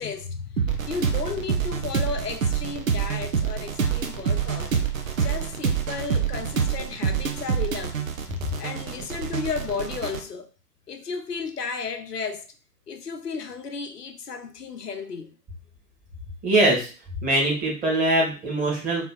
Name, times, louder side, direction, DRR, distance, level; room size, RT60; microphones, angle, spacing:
voice 1, 0.0-4.8 5.2-8.0 8.6-10.5 10.9-12.5 12.9-15.3, left 5 dB, 75° left, 0.8 m, -33 dB
sound 1, 0.6-10.2, right 7 dB, 55° right, 0.9 m, -27 dB
voice 2, 16.4-16.9 17.2-19.1, right 1 dB, 15° right, 1.6 m, -22 dB
3.4 x 3.2 x 4.4 m
figure-of-eight pair, 110°, 47 cm